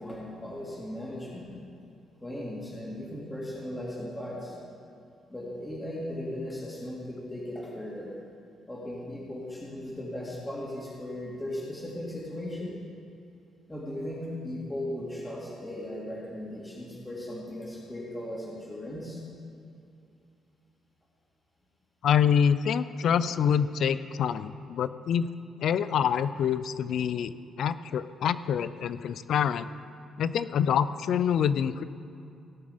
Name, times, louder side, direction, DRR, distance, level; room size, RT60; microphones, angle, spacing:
voice 1, 0.0-1.5 2.2-4.6 5.3-8.1 8.7-12.7 13.7-19.2, left 1 dB, 15° left, -5 dB, 2.9 m, -37 dB
voice 2, 22.0-25.3 25.6-29.7 30.2-31.8, left 8 dB, 70° left, 14 dB, 0.4 m, -26 dB
17.5 x 7.2 x 5.1 m, 2.5 s
cardioid pair, 90°, 0 cm